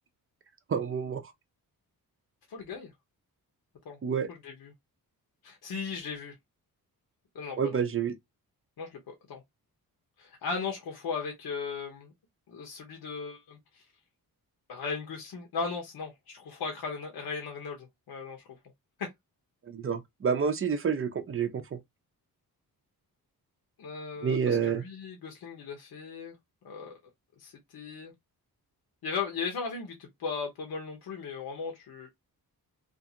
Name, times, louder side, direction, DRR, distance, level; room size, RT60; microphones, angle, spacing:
voice 1, 0.7-1.3 4.0-4.3 7.6-8.1 19.6-21.8 24.2-24.8, right 6 dB, 35° right, 0.5 m, -29 dB
voice 2, 2.5-2.9 3.8-4.0 4.3-4.7 5.4-6.3 7.3-7.8 8.8-9.4 10.2-12.1 12.5-13.8 14.7-18.4 19.0-19.1 23.8-26.3 26.6-27.0 27.4-28.1 29.0-32.1, left 5 dB, 80° left, 0.9 m, -37 dB
2.6 x 2.5 x 2.6 m
wide cardioid pair, 110°, 37 cm